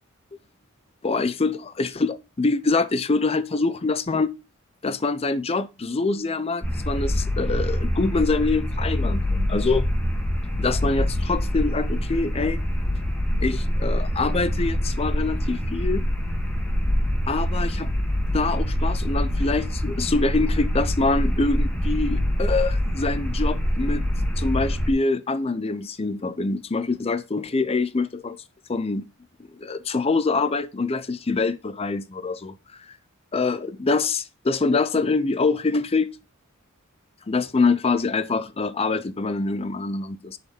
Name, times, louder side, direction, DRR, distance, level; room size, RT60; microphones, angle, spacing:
voice 1, 1.0-4.3 4.8-9.9 10.6-12.6 13.4-16.1 17.3-17.9 18.3-24.0 24.4-28.4 28.7-29.1 29.6-32.6 33.3-36.1 37.3-40.4, left 3 dB, 30° left, 0.5 m, -25 dB
sound 1, 6.6-24.9, equal, 5° left, 1.6 m, -25 dB
9.8 x 4.2 x 4.3 m
head